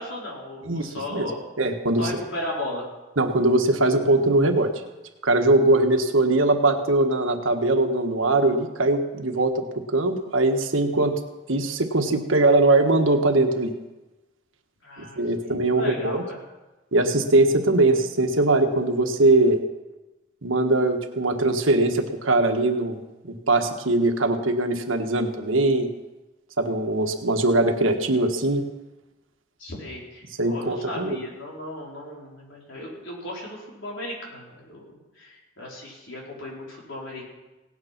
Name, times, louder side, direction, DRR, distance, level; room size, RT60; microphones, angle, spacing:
voice 1, 0.0-1.4 2.0-2.9 14.8-16.4 29.6-37.3, left 1 dB, 80° left, -3 dB, 4.6 m, -36 dB
voice 2, 0.6-1.3 1.6-2.2 3.2-4.7 5.2-11.2 11.5-13.7 15.0-16.2 16.9-19.6 20.4-25.9 26.6-28.6 30.4-31.2, right 2 dB, 85° right, 5 dB, 1.4 m, -21 dB
17.5 x 9.7 x 5.9 m, 1.1 s
head